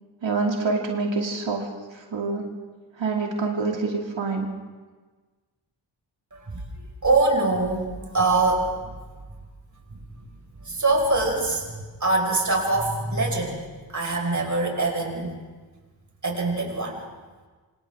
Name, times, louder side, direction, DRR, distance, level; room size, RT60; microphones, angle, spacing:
voice 1, 0.2-1.7 1.9-2.5 3.0-4.5, right 3 dB, 80° right, 0 dB, 2.7 m, -26 dB
voice 2, 6.3-6.6 7.0-7.9 8.1-8.7 10.6-13.6 13.9-15.3 16.2-17.0, right 2 dB, 40° right, 0 dB, 5.6 m, -23 dB
27.5 x 25.5 x 3.8 m, 1.4 s
wide cardioid pair, 90°, 45 cm